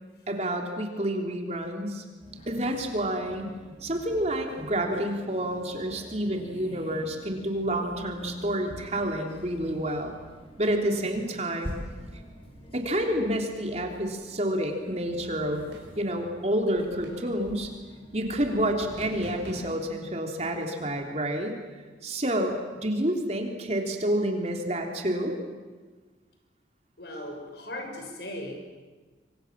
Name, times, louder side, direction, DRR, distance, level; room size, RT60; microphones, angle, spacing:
voice 1, 0.3-2.0 2.5-3.5 3.8-10.2 10.6-11.8 12.7-15.6 15.9-17.7 18.1-21.5 22.0-22.6 22.8-25.4, right 1 dB, 35° right, 3 dB, 3.4 m, -29 dB
sound 1, 2.2-19.2, equal, 30° left, 5.7 m, -47 dB
sound 2, 15.7-16.2 17.0-17.5 19.0-20.0, right 1 dB, 90° right, 6.0 m, -43 dB
voice 2, 27.0-28.6, left 1 dB, 65° left, 3 dB, 6.3 m, -38 dB
26.5 x 25.0 x 7.5 m, 1.3 s
head